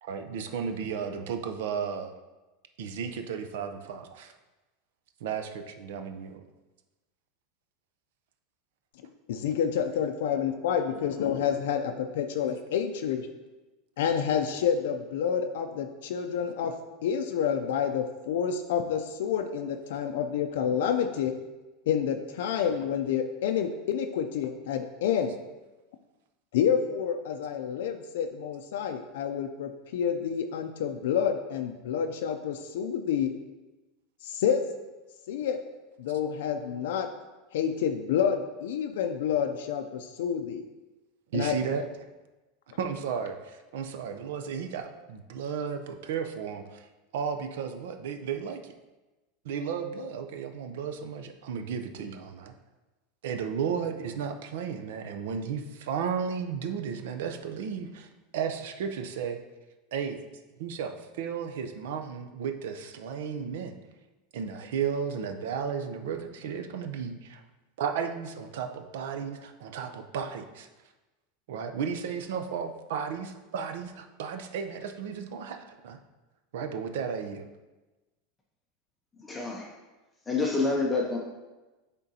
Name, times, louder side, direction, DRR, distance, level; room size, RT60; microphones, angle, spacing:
voice 1, 0.0-2.1 2.8-4.3 5.2-6.4 41.3-41.8 42.8-46.9 47.1-48.7 49.4-52.5 53.2-59.4 59.9-60.2 60.6-63.8 64.3-67.4 67.8-70.7 71.5-76.0 76.5-77.5, right 7 dB, 75° right, 6 dB, 0.6 m, -34 dB
voice 2, 9.3-13.3 14.0-16.7 17.0-21.3 21.9-25.4 26.5-33.3 34.2-34.6 35.3-35.6 36.0-37.1 37.5-40.6 41.3-41.5, left 8 dB, 80° left, 5 dB, 0.4 m, -28 dB
voice 3, 79.2-79.7 80.3-81.2, left 3 dB, 10° left, -1 dB, 0.5 m, -28 dB
9.7 x 3.7 x 2.8 m, 1.1 s
supercardioid pair, 165°, 0 cm